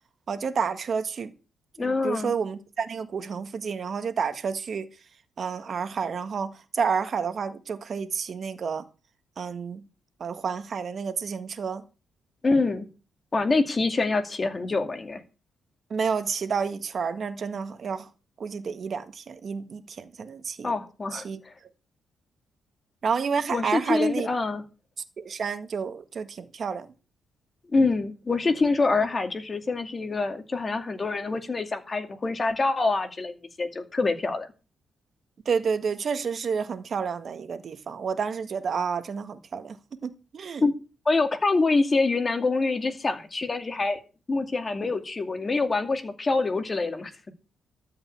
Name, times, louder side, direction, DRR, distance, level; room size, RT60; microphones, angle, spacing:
voice 1, 0.3-1.3 1.8-4.9 5.4-8.8 9.4-9.8 10.2-11.8 15.9-18.1 18.4-20.7 21.1-21.4 23.0-24.3 25.2-26.9 35.5-39.8 40.0-40.6, right 6 dB, 50° right, 1.6 m, -30 dB
voice 2, 1.8-2.3 12.4-12.9 13.3-15.2 20.6-21.5 23.5-24.6 27.7-34.5 40.6-40.7 41.1-44.0 44.3-47.3, left 3 dB, 30° left, 2.3 m, -25 dB
13.5 x 5.5 x 8.6 m
cardioid pair, 90°, 0 cm